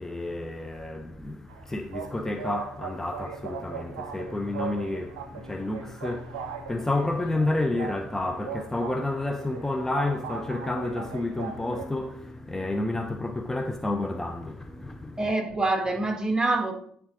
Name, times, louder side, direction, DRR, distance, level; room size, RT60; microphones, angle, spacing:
voice 1, 0.0-15.3, left 2 dB, 10° left, 0.6 m, -30 dB
sound 1, 1.5-11.9, right 7 dB, 75° right, 0.5 m, -39 dB
voice 2, 15.2-16.7, right 2 dB, 20° right, 1.3 m, -25 dB
10.0 x 3.6 x 3.8 m
figure-of-eight pair, 50°, 4 cm